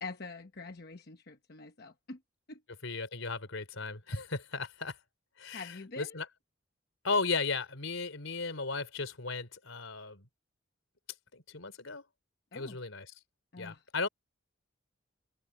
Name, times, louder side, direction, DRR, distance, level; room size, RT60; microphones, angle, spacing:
voice 1, 0.0-2.2 2.5-2.6 5.5-6.2 12.5-12.8 13.5-13.8, left 3 dB, 55° left, 1.0 m, -45 dB
voice 2, 2.8-5.0 5.4-6.3 7.0-10.3 11.3-12.0 12.5-13.1 13.6-14.1, left 4 dB, 85° left, 3.6 m, -35 dB
head